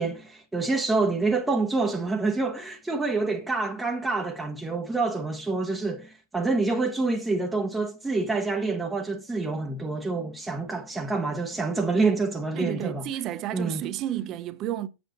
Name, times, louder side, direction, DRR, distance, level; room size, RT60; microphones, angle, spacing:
voice 1, 0.0-13.0 13.5-13.8, right 3 dB, 10° right, 1.1 m, -27 dB
voice 2, 12.5-14.9, right 12 dB, 35° right, 0.9 m, -31 dB
7.9 x 7.7 x 4.1 m
figure-of-eight pair, 90°, 0 cm